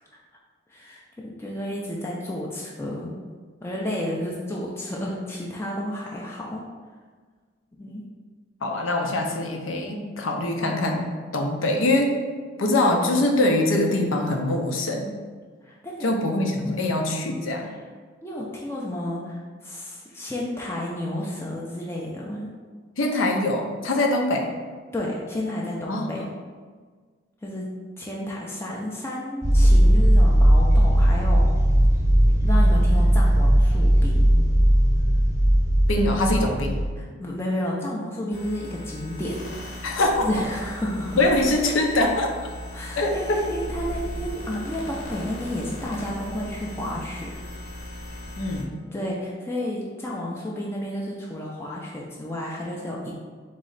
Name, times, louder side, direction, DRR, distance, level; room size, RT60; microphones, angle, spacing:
voice 1, 0.7-3.2 3.6-6.6 7.8-8.0 15.6-16.1 16.6-16.8 17.7-17.8 18.2-22.5 24.9-26.2 27.4-31.5 32.4-34.4 37.0-39.9 40.2-41.2 42.7-47.3 48.9-53.2, left 1 dB, 15° left, -4 dB, 0.4 m, -31 dB
voice 2, 8.6-11.1 11.3-12.1 12.6-15.1 16.0-17.7 23.0-24.5 25.9-26.3 35.9-36.8 39.8-40.3 41.2-42.3 43.0-43.4 48.4-48.8, left 2 dB, 75° left, 3 dB, 0.6 m, -23 dB
sound 1, 29.4-36.9, equal, 15° right, 0.7 m, -18 dB
sound 2, 38.3-48.6, left 1 dB, 55° left, 0.9 m, -37 dB
4.1 x 3.1 x 3.9 m, 1.5 s
head